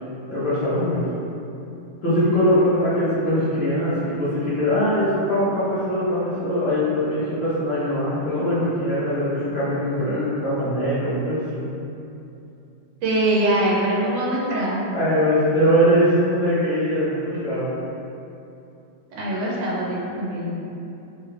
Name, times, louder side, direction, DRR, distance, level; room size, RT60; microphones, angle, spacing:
voice 1, 0.3-1.1 2.0-11.8 14.9-17.7, equal, 65° left, -12 dB, 0.6 m, -22 dB
voice 2, 13.0-14.8 19.1-20.5, right 1 dB, 80° right, -5 dB, 1.3 m, -23 dB
3.3 x 2.2 x 3.2 m, 2.7 s
omnidirectional pair, 2.0 m